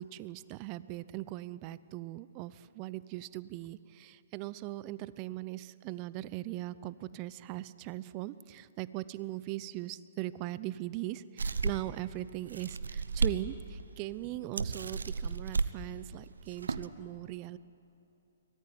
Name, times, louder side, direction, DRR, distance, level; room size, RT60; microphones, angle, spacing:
voice 1, 0.0-17.6, right 16 dB, 30° right, 17 dB, 0.7 m, -40 dB
sound 1, 11.4-12.0 12.5-13.4 13.8-13.9 14.6-15.7 16.4-16.9, right 4 dB, 75° right, 1.0 m, -32 dB
23.5 x 18.5 x 9.4 m, 3.0 s
figure-of-eight pair, 125°, 0 cm